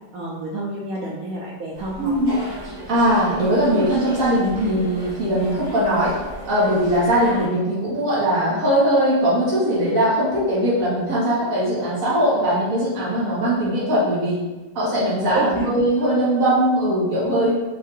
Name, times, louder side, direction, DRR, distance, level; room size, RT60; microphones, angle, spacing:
voice 1, 0.1-2.2 15.1-15.7, right 2 dB, 75° right, -3 dB, 0.8 m, -29 dB
sound 1, 1.7-7.5, equal, 25° right, 1.5 m, -36 dB
voice 2, 2.0-2.3 2.9-6.1 6.5-14.4 14.7-17.6, equal, 45° right, -8 dB, 1.7 m, -20 dB
4.4 x 2.7 x 3.7 m, 1.1 s
omnidirectional pair, 2.1 m